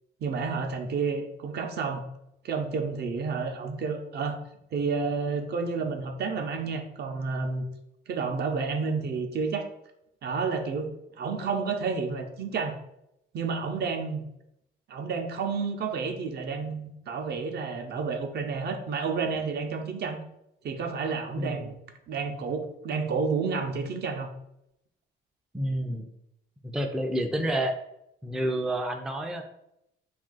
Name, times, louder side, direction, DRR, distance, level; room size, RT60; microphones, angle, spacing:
voice 1, 0.2-2.1 2.4-4.4 4.7-7.6 8.1-9.7 10.2-10.9 11.2-12.8 13.3-14.2 14.9-20.2 20.6-21.8 22.1-24.3, right 5 dB, 55° right, 5 dB, 0.5 m, -30 dB
voice 2, 21.4-21.7 25.5-26.0 26.6-27.7 28.2-29.4, right 1 dB, 5° right, 4 dB, 0.3 m, -29 dB
2.4 x 2.3 x 3.8 m, 0.81 s
cardioid pair, 90°, 20 cm